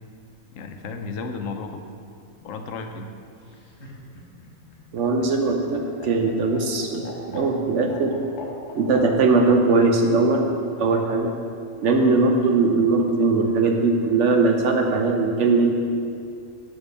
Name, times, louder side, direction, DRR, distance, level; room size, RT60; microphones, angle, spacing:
voice 1, 0.5-1.9 2.4-3.1, left 4 dB, 75° left, 6 dB, 0.9 m, -33 dB
Laughter, 3.4-9.1 10.4-11.0, left 3 dB, 55° left, 1.5 m, -42 dB
voice 2, 4.9-8.2 8.7-10.5 10.8-11.3 11.8-15.7, right 3 dB, 65° right, 3 dB, 1.0 m, -20 dB
6.0 x 5.2 x 6.4 m, 2.4 s
omnidirectional pair, 1.4 m